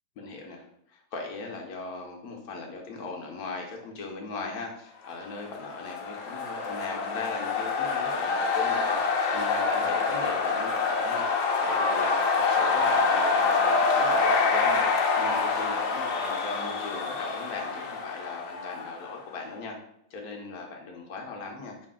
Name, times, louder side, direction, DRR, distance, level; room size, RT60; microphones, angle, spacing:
voice 1, 0.2-19.8 20.1-21.9, left 3 dB, 85° left, 1 dB, 1.3 m, -39 dB
sound 1, 5.4-19.2, left 4 dB, 70° left, 1.0 m, -26 dB
5.0 x 2.5 x 3.6 m, 0.73 s
omnidirectional pair, 1.5 m